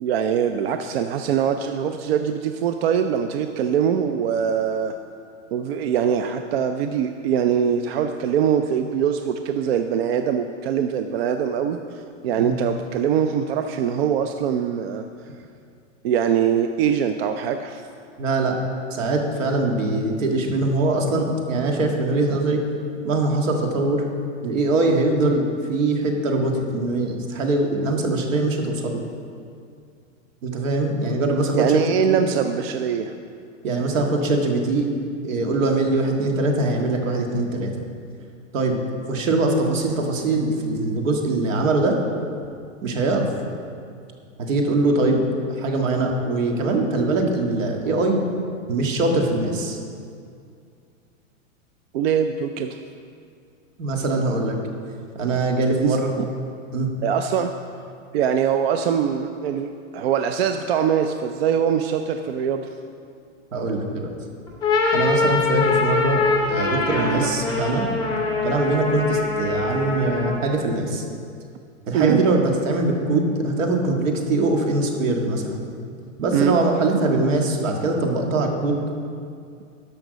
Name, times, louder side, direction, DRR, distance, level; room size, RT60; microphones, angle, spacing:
voice 1, 0.0-4.9 5.5-15.1 16.0-17.8 31.5-33.1 51.9-52.8 55.8-56.3 57.0-57.5 58.1-62.7 71.9-72.2 76.3-76.6, right 8 dB, 50° right, 7 dB, 0.5 m, -23 dB
voice 2, 18.2-18.6 18.9-22.6 23.0-24.1 24.4-29.0 30.4-32.2 33.6-34.9 35.2-37.7 38.5-38.8 39.1-42.0 42.8-43.3 44.4-45.2 45.6-48.2 48.7-49.8 53.8-54.6 55.2-56.1 56.7-56.9 63.5-64.1 64.9-66.2 66.5-67.8 68.4-71.0 71.9-75.6 76.2-78.8, right 2 dB, 75° right, 2 dB, 1.8 m, -22 dB
sound 1, 64.5-70.5, left 3 dB, 10° left, 2.1 m, -23 dB
13.0 x 5.9 x 5.2 m, 2.3 s
hypercardioid pair, 150°, 39 cm